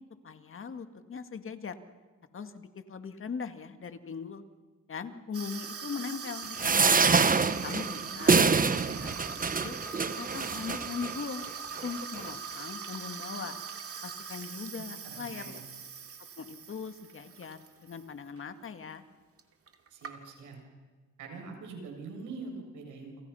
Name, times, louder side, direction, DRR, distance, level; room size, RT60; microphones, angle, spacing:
voice 1, 0.2-1.7 2.3-4.4 4.9-7.2 7.6-9.2 9.6-9.8 10.2-11.5 11.8-13.6 14.0-15.6 16.4-19.0, left 5 dB, 45° left, 8 dB, 2.2 m, -40 dB
Water tap faucet / Sink (filling or washing), 5.3-18.0 18.4-18.7 19.4-19.5 19.7-20.5, right 6 dB, 50° right, 2.7 m, -41 dB
sound 1, 6.6-11.1 11.8-11.9 12.1-12.3, right 5 dB, 30° right, 1.1 m, -25 dB
voice 2, 8.0-9.0 14.8-15.6 19.9-20.6 21.2-23.3, right 4 dB, 80° right, 2 dB, 7.7 m, -44 dB
30.0 x 27.5 x 5.8 m, 1.4 s
cardioid pair, 90°, 30 cm